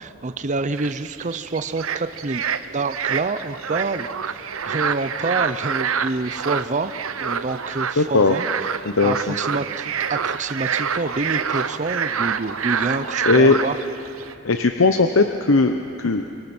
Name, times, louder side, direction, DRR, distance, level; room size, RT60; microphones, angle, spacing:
voice 1, 0.0-2.4 2.7-6.9 7.2-13.8, right 3 dB, 35° right, 11 dB, 0.6 m, -27 dB
sound 1, 0.7-14.3, right 7 dB, 75° right, 0.8 m, -27 dB
voice 2, 8.0-8.4 8.9-9.4 13.2-13.6 14.4-16.3, left 3 dB, 65° left, 6 dB, 0.9 m, -18 dB
28.0 x 25.5 x 6.1 m, 2.7 s
head